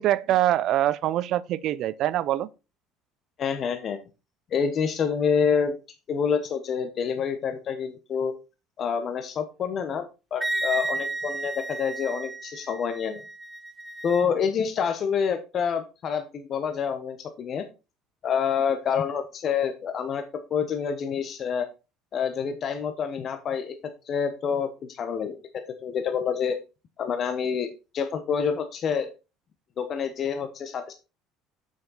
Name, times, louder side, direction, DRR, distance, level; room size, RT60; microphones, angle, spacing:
voice 1, 0.0-2.5, right 13 dB, 60° right, 0.5 m, -24 dB
voice 2, 3.4-4.0 4.5-5.7 6.1-8.3 8.8-13.2 14.0-17.7 18.2-21.7 22.1-23.7 24.0-25.4 25.8-26.6 27.0-27.7 27.9-29.1 29.8-30.9, left 6 dB, 50° left, 1.1 m, -27 dB
Wind instrument woodwind instrument, 10.4-14.3, right 2 dB, 10° right, 0.8 m, -33 dB
6.7 x 6.5 x 4.0 m
supercardioid pair, 80°, 0 cm